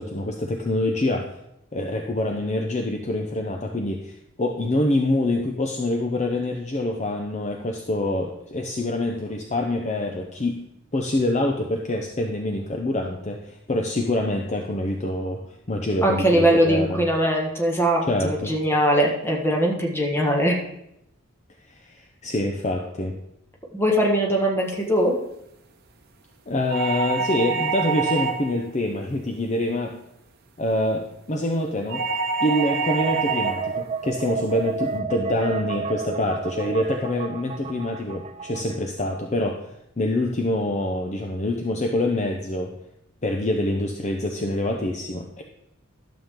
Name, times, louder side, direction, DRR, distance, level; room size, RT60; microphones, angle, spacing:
voice 1, 0.0-1.3 1.7-10.6 10.9-17.0 18.1-18.5 21.7-23.2 26.5-29.9 30.6-32.0 32.4-39.7 40.0-42.7 43.2-45.4, left 1 dB, 35° left, 2 dB, 0.7 m, -26 dB
voice 2, 16.0-20.6 23.7-25.1, equal, 10° left, -1 dB, 1.5 m, -21 dB
sound 1, 26.7-28.6 31.9-33.7, right 5 dB, 50° right, 0.9 m, -26 dB
sound 2, 32.5-38.9, right 5 dB, 30° right, 0.4 m, -32 dB
11.5 x 7.1 x 3.7 m, 0.80 s
head